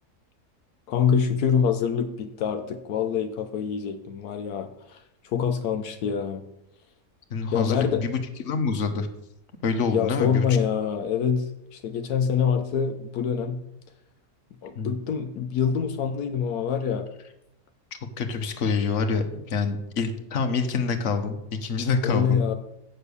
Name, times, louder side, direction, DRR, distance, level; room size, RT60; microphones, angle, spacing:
voice 1, 0.9-5.0 5.3-6.5 7.5-8.0 9.9-13.6 14.6-17.1 22.0-22.5, left 7 dB, 80° left, 7 dB, 1.2 m, -25 dB
voice 2, 7.3-9.1 9.6-10.6 14.7-14.9 18.0-22.5, left 4 dB, 55° left, 6 dB, 1.3 m, -26 dB
7.9 x 6.7 x 6.8 m, 0.83 s
omnidirectional pair, 1.6 m